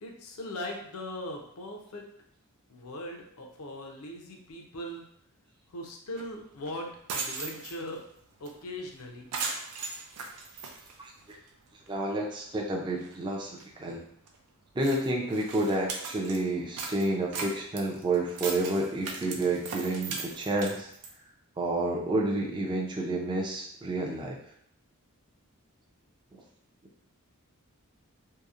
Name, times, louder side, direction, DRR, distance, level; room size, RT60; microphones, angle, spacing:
voice 1, 0.0-2.1 2.7-5.0 5.7-8.0 8.4-9.3, left 1 dB, 75° left, 1 dB, 0.5 m, -40 dB
sound 1, 6.2-6.3 6.6-6.7 7.0-8.0 8.5-8.6 8.8-9.0 9.3-11.5 11.9-12.0 12.5-12.6 12.9-13.1 13.6-13.7 14.3-14.4 14.8-16.4 16.8-21.1, right 4 dB, 90° right, 0.4 m, -38 dB
voice 2, 11.0-11.4 11.9-14.0 14.7-20.9 21.6-24.4, right 2 dB, 20° right, 0 dB, 0.4 m, -30 dB
2.8 x 2.0 x 2.4 m, 0.67 s
head